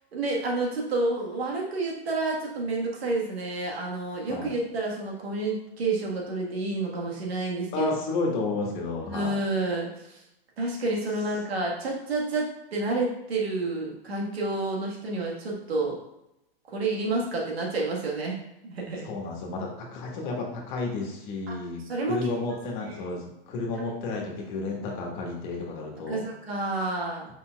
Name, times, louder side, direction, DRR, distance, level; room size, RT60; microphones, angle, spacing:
voice 1, 0.1-7.9 9.0-10.2 10.6-16.0 16.7-18.4 18.6-19.1 21.5-21.6 21.9-22.2 22.8-23.0 26.1-27.3, right 2 dB, 90° right, -2 dB, 1.4 m, -29 dB
voice 2, 7.7-9.4 19.0-21.8 22.1-26.2, left 3 dB, 50° left, 0 dB, 1.4 m, -31 dB
5.0 x 4.4 x 2.3 m, 0.88 s
hypercardioid pair, 125°, 30 cm